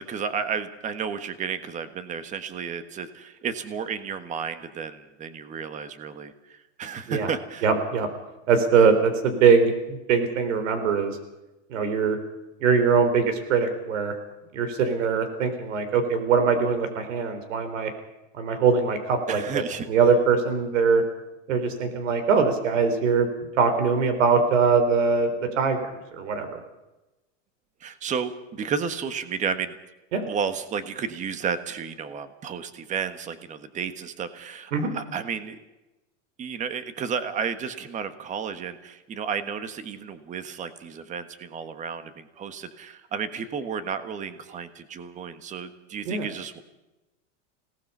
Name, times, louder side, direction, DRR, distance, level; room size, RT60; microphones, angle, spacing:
voice 1, 0.0-7.6 19.3-19.9 27.8-29.8 30.3-35.6 36.4-46.6, right 6 dB, 20° right, 11 dB, 1.4 m, -32 dB
voice 2, 7.6-8.1 8.5-11.2 11.7-12.2 12.6-14.1 14.5-17.9 18.3-21.0 21.5-23.3 23.6-25.8 26.2-26.6 30.1-30.3 34.7-34.9 46.1-46.3, right 5 dB, 80° right, 8 dB, 3.9 m, -22 dB
27.5 x 18.5 x 5.6 m, 1.0 s
supercardioid pair, 155°, 37 cm